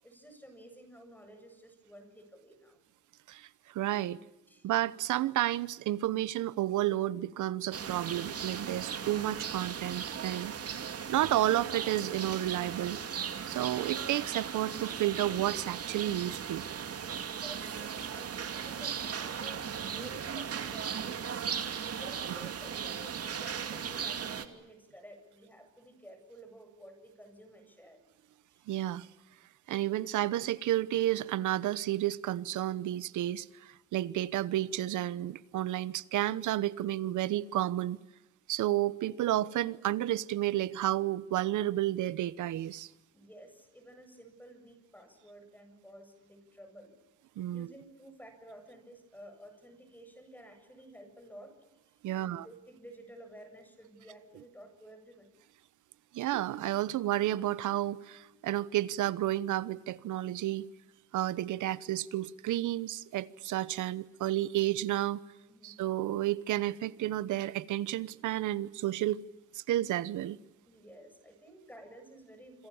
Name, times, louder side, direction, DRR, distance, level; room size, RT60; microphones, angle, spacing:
voice 1, 0.0-2.8 4.5-4.7 17.3-21.5 22.0-28.0 28.5-28.7 43.1-46.9 47.5-51.6 51.8-55.3 65.5-65.8 70.7-72.7, right 1 dB, 5° left, 7.7 m, -52 dB
voice 2, 3.3-4.2 4.6-10.6 11.1-13.0 13.5-16.6 28.7-29.1 29.7-38.0 38.5-42.9 47.4-47.7 52.0-52.4 56.1-60.7 61.1-65.2 65.6-69.2 69.5-70.4, right 14 dB, 80° right, 1.1 m, -31 dB
sound 1, 7.7-24.5, right 7 dB, 50° right, 2.5 m, -37 dB
27.0 x 26.5 x 7.2 m
cardioid pair, 90°, 30 cm